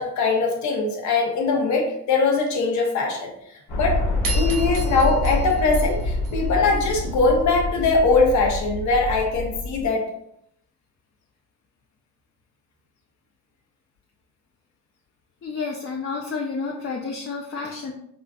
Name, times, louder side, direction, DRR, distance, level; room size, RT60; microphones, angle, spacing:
voice 1, 0.0-4.0 4.3-10.1, left 3 dB, 70° left, 1 dB, 0.9 m, -21 dB
sound 1, 3.7-9.9, left 2 dB, 90° left, 1.3 m, -26 dB
sound 2, 4.2-6.8, right 4 dB, 85° right, 1.0 m, -34 dB
voice 2, 15.4-17.9, left 4 dB, 45° left, 0 dB, 0.5 m, -30 dB
4.9 x 2.4 x 2.3 m, 0.72 s
cardioid pair, 90°, 30 cm